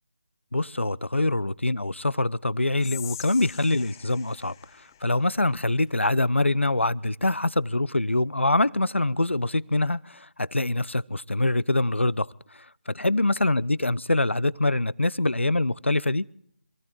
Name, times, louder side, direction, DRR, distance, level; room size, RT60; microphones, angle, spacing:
voice 1, 0.5-4.5 5.0-12.3 12.9-16.2, left 2 dB, 90° left, 0.6 m, -24 dB
Whispering, 2.8-6.0, left 10 dB, 20° left, 0.5 m, -43 dB
27.0 x 16.5 x 3.0 m
figure-of-eight pair, 155°, 6 cm